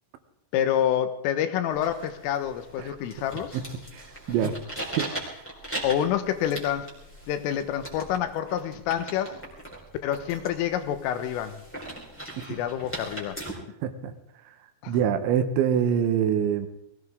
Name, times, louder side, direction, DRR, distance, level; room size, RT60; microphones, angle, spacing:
voice 1, 0.5-3.6 4.4-4.5 5.8-6.9 7.3-9.4 10.0-11.6 12.5-13.4 14.8-15.0, left 10 dB, 85° left, 9 dB, 3.7 m, -27 dB
sound 1, 1.7-13.5, right 1 dB, 5° left, 3.2 m, -40 dB
voice 2, 4.3-5.1 13.8-14.1 14.9-16.7, right 9 dB, 75° right, 9 dB, 3.1 m, -25 dB
21.5 x 17.0 x 3.6 m, 0.81 s
omnidirectional pair, 5.7 m